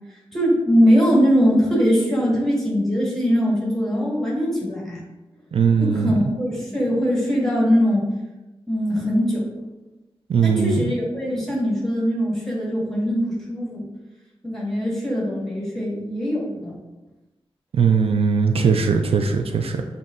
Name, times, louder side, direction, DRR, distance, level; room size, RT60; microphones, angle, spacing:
voice 1, 0.3-5.0 5.8-8.1 8.7-9.4 10.4-13.8 14.4-16.8, equal, 5° left, -5 dB, 1.5 m, -21 dB
voice 2, 5.5-6.1 10.3-10.9 17.7-19.8, right 5 dB, 75° right, 4 dB, 0.4 m, -19 dB
7.1 x 2.7 x 2.6 m, 1.1 s
wide cardioid pair, 125°, 10 cm